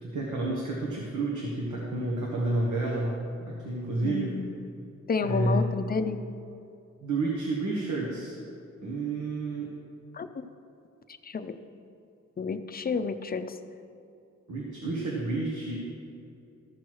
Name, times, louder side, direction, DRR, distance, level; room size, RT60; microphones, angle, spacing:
voice 1, 0.0-3.1 3.4-4.3 5.2-5.7 7.0-8.4 8.8-9.7 14.5-15.7, right 2 dB, 85° right, -2 dB, 1.4 m, -30 dB
voice 2, 4.0-4.5 5.1-6.2 10.1-10.3 11.2-11.6 12.4-13.6, left 5 dB, 30° left, 9 dB, 0.5 m, -30 dB
14.0 x 6.0 x 4.7 m, 2.7 s
wide cardioid pair, 100°, 30 cm